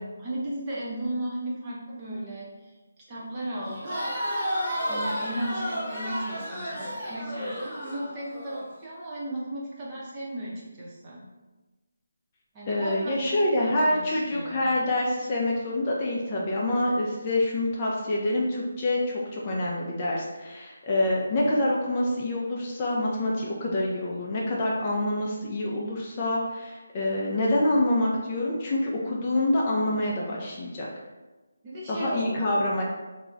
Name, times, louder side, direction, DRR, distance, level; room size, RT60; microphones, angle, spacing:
voice 1, 0.0-2.7 3.1-3.9 4.8-11.2 12.5-14.7 31.6-32.6, right 1 dB, 20° right, -6 dB, 0.6 m, -35 dB
Crowd, 3.6-8.6, equal, 10° left, 1.0 m, -32 dB
voice 2, 12.7-30.9 31.9-32.8, left 1 dB, 25° left, -4 dB, 0.3 m, -26 dB
2.3 x 2.0 x 3.7 m, 1.2 s
figure-of-eight pair, 165°, 0 cm